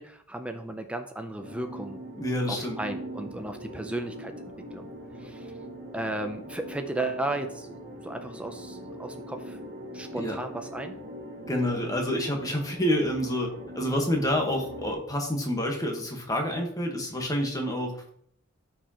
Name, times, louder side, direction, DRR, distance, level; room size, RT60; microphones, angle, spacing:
voice 1, 0.0-2.0 2.5-4.9 5.2-5.5 5.9-7.7 8.0-9.6 9.9-10.9, right 2 dB, 5° right, 7 dB, 0.5 m, -35 dB
sound 1, 1.4-14.9, right 1 dB, 55° right, 1.3 m, -41 dB
voice 2, 2.1-2.8 10.1-10.4 11.5-13.5 13.7-18.1, equal, 15° left, 1 dB, 1.3 m, -28 dB
13.5 x 4.7 x 2.9 m, 0.68 s
head